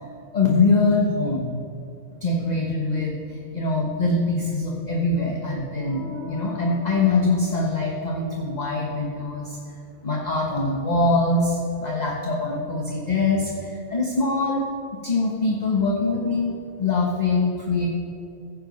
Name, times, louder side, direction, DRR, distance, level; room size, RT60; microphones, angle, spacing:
voice 1, 0.3-1.5 2.2-9.6 10.0-14.6 15.0-17.9, left 3 dB, 30° left, -2 dB, 1.3 m, -23 dB
15.5 x 7.7 x 5.3 m, 2.7 s
omnidirectional pair, 1.5 m